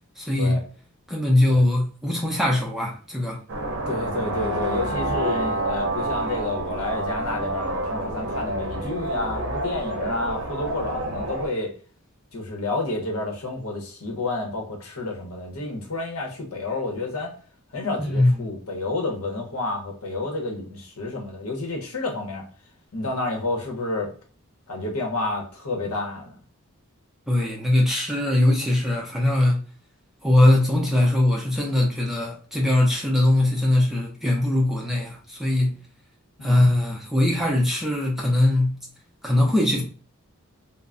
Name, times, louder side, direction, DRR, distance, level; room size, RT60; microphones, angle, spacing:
voice 1, 0.2-0.6 1.1-3.4 18.0-18.4 27.3-29.6 30.2-35.7 36.4-38.8 39.2-39.8, left 1 dB, ahead, 0.4 m, -21 dB
sound 1, 3.5-11.5, right 1 dB, 55° right, 0.6 m, -28 dB
voice 2, 3.9-11.7 12.3-17.3 17.7-22.4 22.9-24.1 24.7-26.4 36.4-36.6, left 2 dB, 75° left, 0.8 m, -30 dB
2.2 x 2.0 x 3.6 m
head